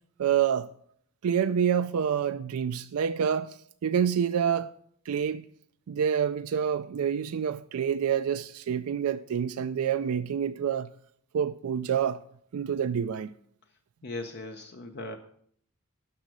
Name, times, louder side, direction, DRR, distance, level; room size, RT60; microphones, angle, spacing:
voice 1, 0.2-0.7 1.2-4.7 5.1-5.4 5.9-10.9 11.3-12.2 12.5-13.3, right 8 dB, 80° right, 0.4 m, -27 dB
voice 2, 14.0-15.2, left 2 dB, 50° left, 0.7 m, -38 dB
10.5 x 6.2 x 6.2 m
head